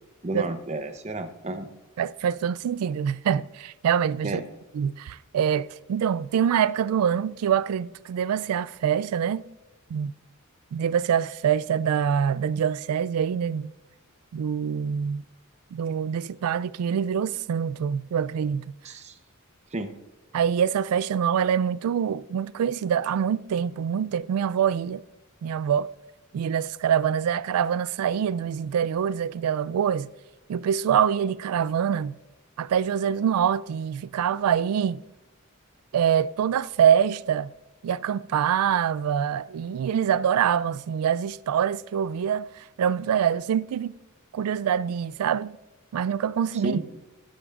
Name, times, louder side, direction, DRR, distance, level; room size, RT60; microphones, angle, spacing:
voice 1, 0.2-1.7 4.2-4.4 18.8-19.2 19.7-19.9 46.6-46.8, right 2 dB, 30° right, 0.7 m, -31 dB
voice 2, 2.0-4.4 4.7-9.5 9.9-10.1 10.7-13.7 14.3-15.2 15.7-18.7 20.3-25.0 25.4-25.9 26.3-30.1 30.5-32.2 32.6-35.0 35.9-37.5 37.8-43.9 44.3-45.6 45.9-46.8, right 8 dB, 80° right, 0.3 m, -25 dB
12.0 x 8.4 x 2.4 m
head